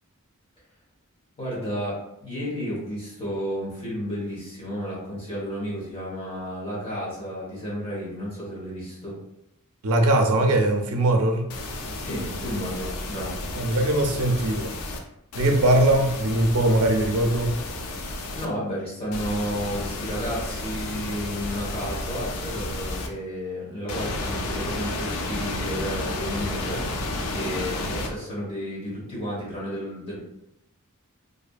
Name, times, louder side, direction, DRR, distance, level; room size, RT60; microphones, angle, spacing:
voice 1, 1.4-9.2 12.0-13.4 18.4-27.1 27.3-30.2, equal, 25° left, -6 dB, 1.0 m, -32 dB
voice 2, 9.8-11.5 13.5-14.7 15.3-17.5, right 1 dB, 75° right, 3 dB, 0.4 m, -21 dB
sound 1, 11.5-15.0 15.3-18.5 19.1-23.1 23.9-28.1, left 2 dB, 85° left, 0.4 m, -32 dB
2.6 x 2.5 x 2.2 m, 0.81 s
head